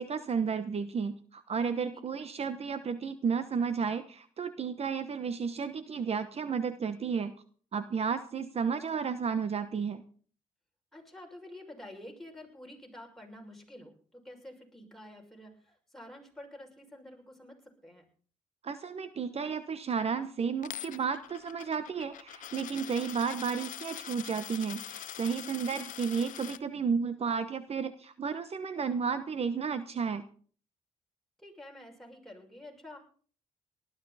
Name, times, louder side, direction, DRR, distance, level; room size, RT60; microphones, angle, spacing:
voice 1, 0.0-7.3 7.7-10.0 18.6-30.2, right 6 dB, 50° right, 12 dB, 1.0 m, -32 dB
voice 2, 1.9-2.3 10.9-18.1 25.4-25.8 31.4-33.0, left 1 dB, ahead, 0 dB, 6.2 m, -49 dB
Coin (dropping), 20.6-26.6, left 12 dB, 75° left, 0.6 m, -44 dB
19.0 x 13.0 x 4.2 m, 0.43 s
cardioid pair, 75°, 14 cm